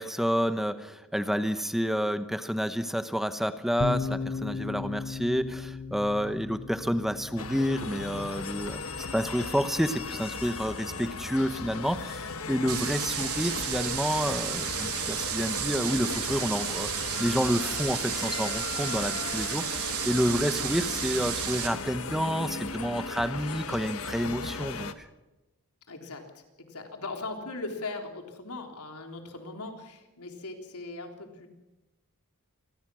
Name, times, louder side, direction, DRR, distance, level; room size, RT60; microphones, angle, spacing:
voice 1, 0.0-16.9 17.2-24.9, equal, ahead, 10 dB, 0.9 m, -29 dB
sound 1, 3.8-13.2, left 4 dB, 40° left, 1.1 m, -39 dB
sound 2, 7.4-24.9, left 4 dB, 65° left, 1.4 m, -37 dB
sound 3, 12.7-21.7, right 9 dB, 85° right, 3.5 m, -33 dB
voice 2, 25.9-31.5, left 3 dB, 85° left, 3 dB, 3.6 m, -39 dB
27.5 x 19.5 x 6.3 m, 1.0 s
head